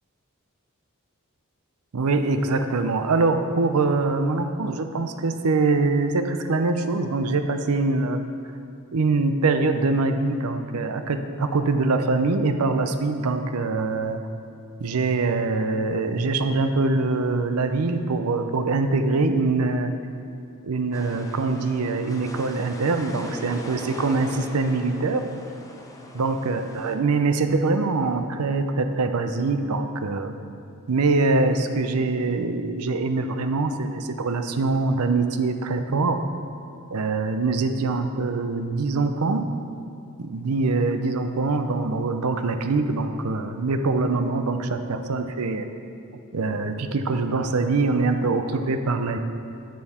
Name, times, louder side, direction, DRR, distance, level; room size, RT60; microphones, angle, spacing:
voice 1, 1.9-8.2 8.9-14.2 14.8-19.9 20.6-25.3 26.1-30.3 30.9-36.2 36.9-39.4 40.2-45.7 46.3-49.2, right 3 dB, 80° right, 8 dB, 0.6 m, -23 dB
sound 1, 20.9-27.0, left 1 dB, 15° left, 0.7 m, -40 dB
10.5 x 6.9 x 4.3 m, 2.5 s
head